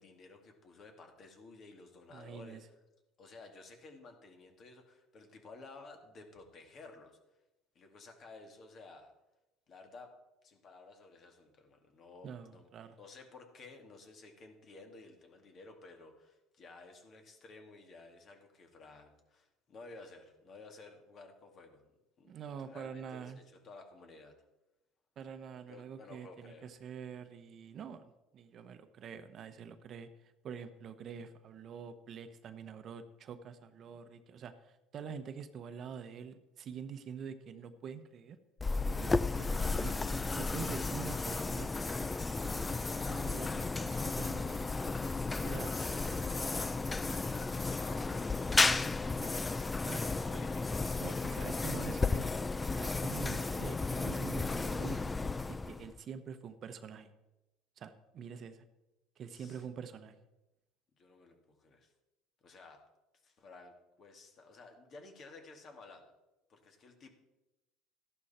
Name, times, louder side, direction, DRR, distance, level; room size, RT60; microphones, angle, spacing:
voice 1, 0.0-2.6 3.2-7.2 7.7-9.1 9.7-10.1 10.4-12.7 13.0-21.9 22.2-24.4 25.7-26.7 45.3-52.5 59.3-59.6 61.0-61.9 62.4-62.8 63.2-66.1 66.5-67.1, left 3 dB, 40° left, 4 dB, 2.4 m, -54 dB
voice 2, 2.1-2.6 12.2-13.0 22.3-23.4 25.2-38.4 38.9-40.0 40.4-41.7 42.0-45.0 45.4-45.7 48.8-49.0 49.8-50.0 51.0-52.2 52.7-55.1 55.5-57.1 57.8-58.6 59.2-60.1, right 7 dB, 45° right, 10 dB, 1.0 m, -46 dB
sound 1, 38.6-56.0, left 3 dB, 15° left, 0.4 m, -33 dB
13.5 x 11.5 x 4.4 m, 0.97 s
supercardioid pair, 115°, 0 cm